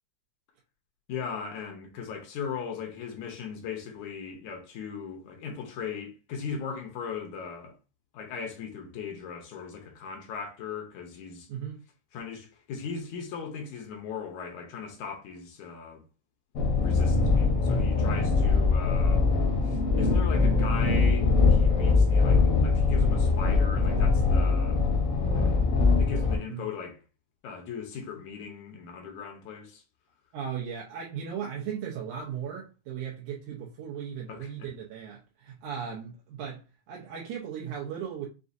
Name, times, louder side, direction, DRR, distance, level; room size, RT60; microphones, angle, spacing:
voice 1, 1.1-7.7 8.1-11.5 12.1-16.0 16.8-19.3 19.6-24.8 25.3-25.6 26.0-27.0 27.4-29.8 34.3-34.7, left 6 dB, 80° left, 2.2 m, -38 dB
sound 1, 16.6-26.4, left 4 dB, 65° left, 1.5 m, -22 dB
voice 2, 30.3-36.6 36.9-38.3, right 8 dB, 85° right, 2.2 m, -37 dB
6.1 x 2.4 x 2.6 m
omnidirectional pair, 3.5 m